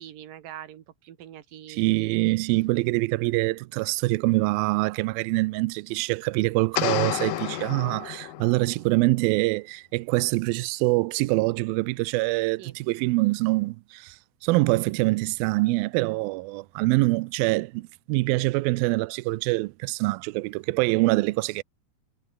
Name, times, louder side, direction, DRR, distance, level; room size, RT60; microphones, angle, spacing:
voice 1, 0.0-2.2 2.5-2.6 12.6-12.8 21.2-21.4, right 11 dB, 60° right, 3.2 m, -44 dB
voice 2, 1.7-21.6, right 22 dB, 90° right, 2.1 m, -25 dB
sound 1, 6.7-8.7, left 14 dB, 70° left, 2.3 m, -30 dB
omnidirectional pair, 4.8 m